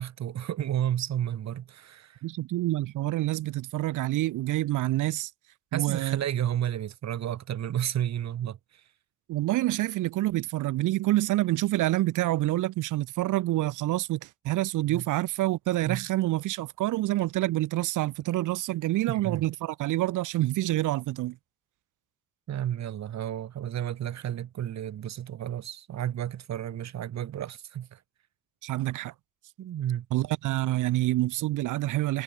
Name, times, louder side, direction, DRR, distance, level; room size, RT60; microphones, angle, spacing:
voice 1, 0.0-2.2 5.7-8.6 14.9-15.1 15.8-16.1 19.1-19.4 22.5-28.0 29.6-30.1, right 11 dB, 65° right, 2.0 m, -32 dB
voice 2, 2.2-5.3 5.7-6.2 9.3-21.4 28.6-29.1 30.1-32.2, right 16 dB, 90° right, 2.6 m, -27 dB
cardioid pair, 90°, 30 cm